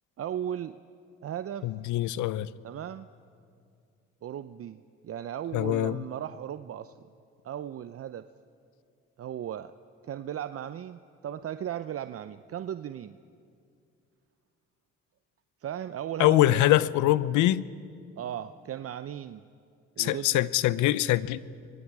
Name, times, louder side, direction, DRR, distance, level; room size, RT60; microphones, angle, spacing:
voice 1, 0.2-0.8 1.2-1.7 2.6-3.1 4.2-6.9 7.4-8.3 9.2-9.7 10.0-13.2 15.6-16.7 18.2-19.4 20.0-20.4, right 10 dB, 50° right, 0.7 m, -36 dB
voice 2, 1.6-2.5 5.5-6.0 16.2-17.6 20.0-21.4, left 15 dB, 80° left, 0.7 m, -23 dB
29.0 x 23.0 x 4.8 m
supercardioid pair, 60°, 30 cm